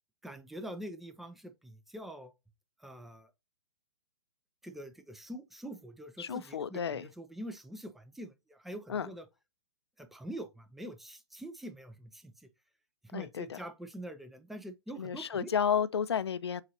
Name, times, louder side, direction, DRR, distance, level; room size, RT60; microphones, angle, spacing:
voice 1, 0.2-2.3 2.8-3.3 4.6-9.3 10.0-12.5 13.0-15.5, right 1 dB, ahead, 0.5 m, -45 dB
voice 2, 6.2-7.1 8.9-9.1 13.1-13.6 15.0-16.6, left 7 dB, 65° left, 0.5 m, -32 dB
7.3 x 2.5 x 2.8 m
figure-of-eight pair, 120°, 15 cm